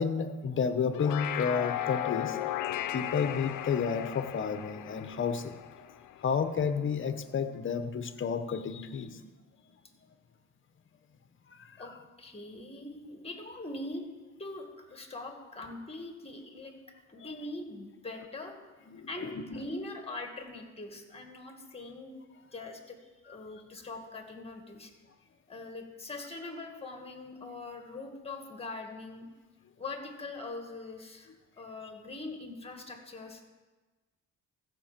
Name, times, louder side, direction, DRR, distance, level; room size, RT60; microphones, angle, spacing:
voice 1, 0.0-2.4 2.9-5.9 6.2-9.3 11.5-11.7 17.2-17.3 18.9-19.3, left 6 dB, 40° left, 10 dB, 1.0 m, -31 dB
sound 1, 0.8-6.3, left 12 dB, 90° left, 0.6 m, -36 dB
voice 2, 11.8-14.1 14.4-16.7 17.1-18.6 19.1-22.2 22.5-24.9 25.5-29.3 29.8-33.4, left 2 dB, 20° left, 4 dB, 2.0 m, -42 dB
14.5 x 5.3 x 7.4 m, 1.3 s
cardioid pair, 90°, 30 cm